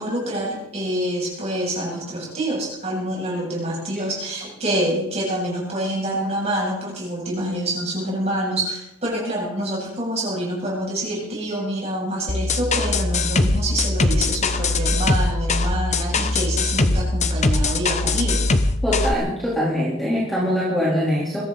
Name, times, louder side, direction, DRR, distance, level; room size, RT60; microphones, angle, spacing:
voice 1, 0.0-18.6, right 1 dB, 30° right, -4 dB, 8.0 m, -26 dB
sound 1, 12.3-19.1, left 2 dB, 30° left, 0.9 m, -21 dB
voice 2, 18.8-21.4, equal, ahead, -7 dB, 3.8 m, -22 dB
22.5 x 14.0 x 4.2 m, 0.78 s
head